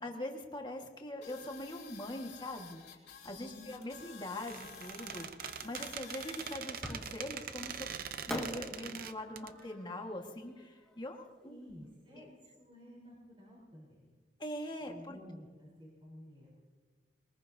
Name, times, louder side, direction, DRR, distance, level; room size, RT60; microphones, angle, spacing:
voice 1, 0.0-2.8 3.2-11.6 12.1-12.3 14.4-15.2, left 1 dB, 25° left, 2 dB, 1.6 m, -43 dB
sound 1, 1.2-6.6, left 7 dB, 60° left, 2.6 m, -52 dB
voice 2, 3.4-3.7 11.4-14.1 14.9-16.5, equal, 30° right, -5 dB, 3.8 m, -53 dB
Squeak, 4.4-9.5, right 8 dB, 50° right, 0.6 m, -43 dB
Fireworks, 6.8-7.5 8.3-11.4, equal, 5° left, 1.8 m, -44 dB
22.5 x 20.0 x 2.8 m, 1.4 s
head